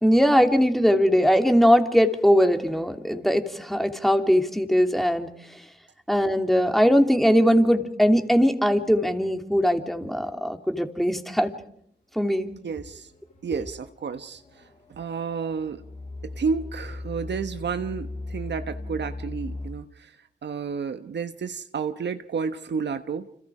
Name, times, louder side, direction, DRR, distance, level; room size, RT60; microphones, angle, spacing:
voice 1, 0.0-5.3 6.1-11.5 12.1-12.5, equal, ahead, 5 dB, 3.0 m, -20 dB
sound 1, 12.4-19.7, left 2 dB, 40° left, 6.8 m, -39 dB
voice 2, 12.6-13.1 13.4-15.8 16.2-20.2 20.4-23.3, right 5 dB, 65° right, 9 dB, 1.2 m, -31 dB
30.0 x 26.5 x 5.0 m, 0.71 s
cardioid pair, 65°, 19 cm